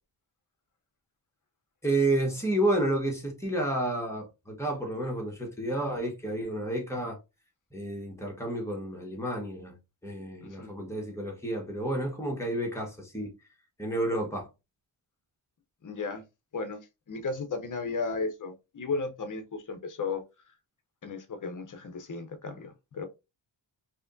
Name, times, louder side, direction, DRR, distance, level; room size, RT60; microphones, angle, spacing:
voice 1, 1.8-7.2 7.7-9.7 10.0-13.3 13.8-14.5, right 1 dB, 5° left, 1.3 m, -30 dB
voice 2, 10.4-10.7 15.8-16.2 16.5-16.8 17.1-20.2 21.0-23.1, left 4 dB, 40° left, 0.8 m, -34 dB
4.7 x 2.9 x 2.6 m
wide cardioid pair, 130°, 48 cm